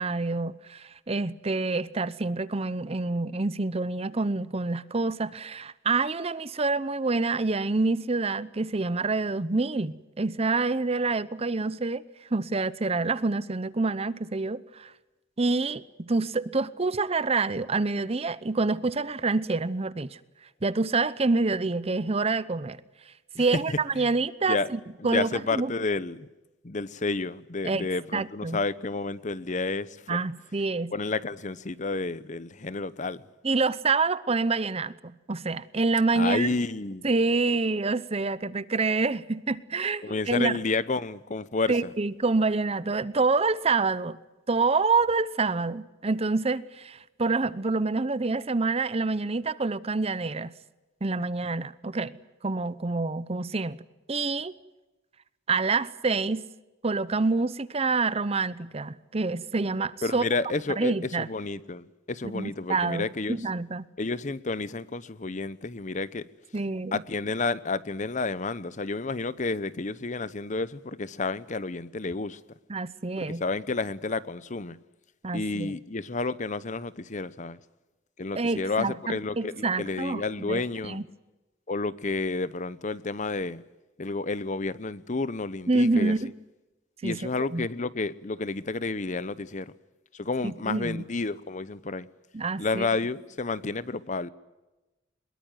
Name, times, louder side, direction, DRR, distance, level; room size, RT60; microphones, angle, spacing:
voice 1, 0.0-12.0 12.3-14.9 15.4-20.2 20.6-22.8 23.4-25.7 27.6-28.6 30.1-30.9 33.4-36.5 37.0-40.6 41.7-44.2 44.5-50.5 51.0-52.2 52.4-53.8 54.1-54.5 55.5-56.4 56.8-60.2 60.8-61.3 62.2-63.8 66.5-67.0 72.7-73.4 75.2-75.7 78.3-81.0 85.7-86.3 87.0-87.2 87.5-87.7 90.4-91.0 92.3-92.9, right 3 dB, 30° right, 0.8 m, -27 dB
voice 2, 25.0-26.3 26.6-30.2 30.9-33.2 36.2-37.1 40.0-41.9 60.0-63.4 64.0-66.2 66.9-72.4 73.2-74.8 75.3-77.6 78.2-81.0 81.7-83.6 84.0-86.2 87.0-89.7 90.1-92.1 92.6-94.3, left 3 dB, 40° left, 0.8 m, -30 dB
23.0 x 21.5 x 9.3 m
head